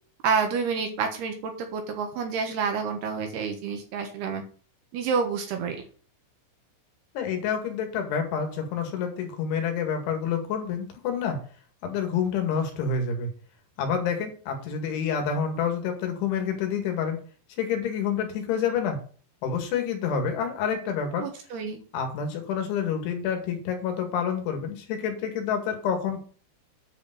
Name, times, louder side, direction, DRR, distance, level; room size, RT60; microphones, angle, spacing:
voice 1, 0.2-4.4 4.9-5.8 21.2-21.8, right 5 dB, 70° right, 5 dB, 2.8 m, -28 dB
voice 2, 7.2-11.4 11.8-13.3 13.8-17.2 17.6-19.0 19.4-21.3 21.9-26.2, left 7 dB, 70° left, 4 dB, 4.2 m, -28 dB
9.9 x 5.2 x 6.8 m, 0.41 s
omnidirectional pair, 6.0 m